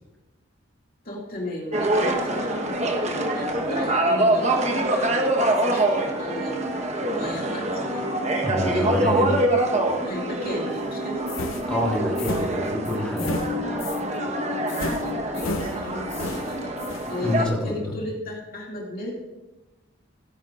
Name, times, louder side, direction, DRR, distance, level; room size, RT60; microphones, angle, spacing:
voice 1, 1.0-6.7 7.1-8.1 8.7-9.4 10.0-11.3 15.0-19.1, left 1 dB, 45° left, -3 dB, 2.4 m, -35 dB
sound 1, 1.7-17.5, right 1 dB, 35° right, 1.2 m, -25 dB
voice 2, 8.4-9.4 11.7-13.4 17.2-17.9, left 1 dB, 5° left, -3 dB, 3.1 m, -26 dB
sound 2, 11.3-14.1 14.7-17.1, left 2 dB, 85° left, 0.8 m, -34 dB
17.5 x 10.5 x 2.6 m, 1.1 s
head